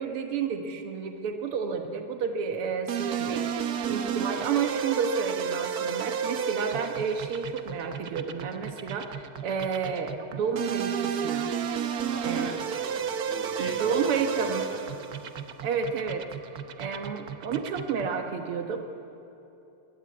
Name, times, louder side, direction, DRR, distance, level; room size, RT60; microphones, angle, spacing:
voice 1, 0.0-11.5 12.2-12.5 13.6-14.7 15.6-16.2 16.8-18.9, right 6 dB, 80° right, 4 dB, 2.2 m, -31 dB
sound 1, 2.9-18.2, right 8 dB, 55° right, 1.2 m, -32 dB
voice 2, 12.0-14.9, right 1 dB, 30° right, 0 dB, 3.0 m, -40 dB
22.5 x 21.0 x 8.5 m, 2.9 s
omnidirectional pair, 2.4 m